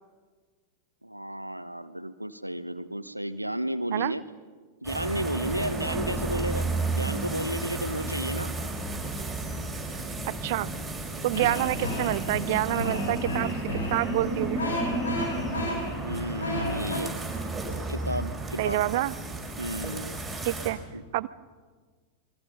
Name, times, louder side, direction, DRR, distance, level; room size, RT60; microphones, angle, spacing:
voice 1, 1.0-4.2 4.8-6.7 6.9-8.5 15.9-17.2 17.9-18.8 19.6-20.1 20.9-21.0, right 1 dB, 90° right, 14 dB, 1.0 m, -32 dB
sound 1, 4.8-20.7, right 2 dB, 10° right, 5.5 m, -33 dB
voice 2, 10.4-10.7 11.2-14.8 18.6-19.1 20.4-20.8 21.1-21.3, right 16 dB, 50° right, 20 dB, 0.7 m, -27 dB
sound 2, 11.3-17.0, left 1 dB, 70° left, 5.4 m, -33 dB
27.0 x 22.5 x 5.6 m, 1.5 s
figure-of-eight pair, 90°, 0 cm